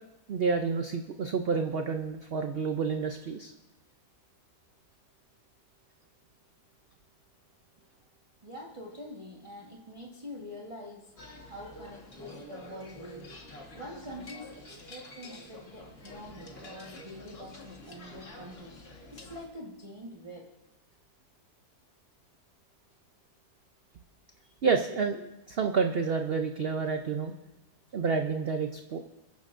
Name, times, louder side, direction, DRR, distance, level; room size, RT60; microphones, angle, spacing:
voice 1, 0.3-3.5 24.6-27.3 27.9-29.0, right 5 dB, 55° right, 5 dB, 0.7 m, -29 dB
voice 2, 8.4-11.1 11.5-13.4 13.7-18.7 19.1-20.5, equal, 20° right, -3 dB, 1.3 m, -45 dB
sound 1, 11.2-19.5, left 1 dB, 40° left, 1.7 m, -48 dB
28.5 x 10.5 x 2.5 m, 0.93 s
omnidirectional pair, 1.6 m